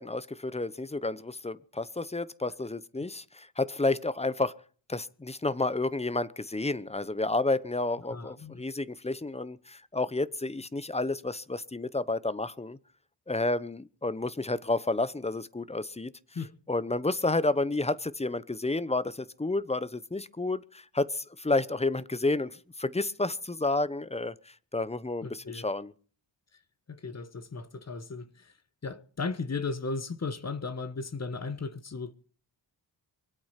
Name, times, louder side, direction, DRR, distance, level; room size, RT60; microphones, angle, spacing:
voice 1, 0.0-4.5 4.9-12.8 13.3-16.1 16.7-24.3 24.7-25.9, left 2 dB, 15° left, 0.8 m, -30 dB
voice 2, 8.1-8.6 16.3-16.5 25.2-25.7 26.9-28.5 28.8-32.1, left 4 dB, 35° left, 1.3 m, -36 dB
24.5 x 8.7 x 5.8 m
cardioid pair, 90°, 45 cm